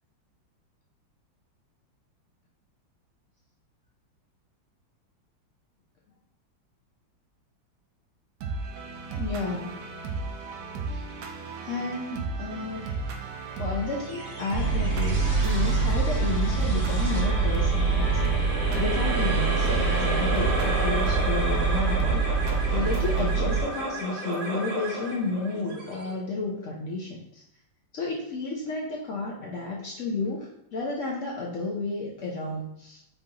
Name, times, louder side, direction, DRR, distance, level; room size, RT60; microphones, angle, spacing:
sound 1, 8.4-23.3, right 3 dB, 75° right, 0.8 m, -35 dB
voice 1, 9.2-9.8 10.9-11.0 11.6-12.9 13.6-18.1 18.7-22.3 22.7-27.4 27.9-33.0, left 3 dB, 80° left, -2 dB, 0.6 m, -32 dB
sound 2, 14.0-26.7, right 2 dB, 45° right, 1.0 m, -33 dB
sound 3, 14.5-23.6, right 4 dB, 60° left, 2.0 m, -25 dB
4.5 x 3.9 x 2.8 m, 0.78 s
omnidirectional pair, 2.1 m